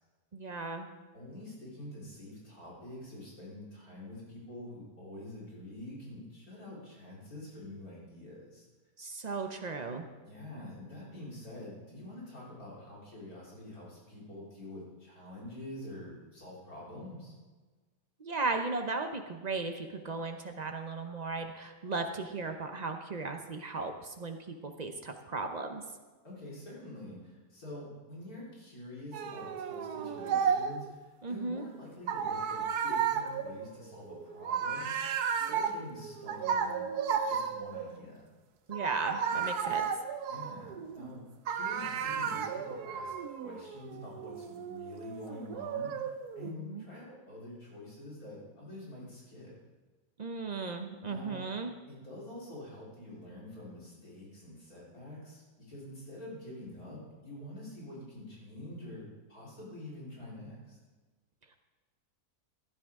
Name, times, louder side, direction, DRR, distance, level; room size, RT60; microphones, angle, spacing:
voice 1, 0.3-0.9 9.0-10.1 18.2-25.8 31.2-31.6 38.7-39.8 46.4-46.8 50.2-51.7, right 3 dB, 45° right, 5 dB, 0.5 m, -36 dB
voice 2, 1.1-8.6 10.2-17.3 26.2-36.9 37.2-38.3 40.3-41.2 41.5-49.5 51.1-51.4 51.9-60.8, left 1 dB, 55° left, -6 dB, 4.5 m, -46 dB
sound 1, 29.1-30.9 32.1-38.0 38.7-41.1 41.5-46.5, right 7 dB, 70° right, 1.2 m, -34 dB
15.5 x 10.5 x 3.6 m, 1.3 s
omnidirectional pair, 1.8 m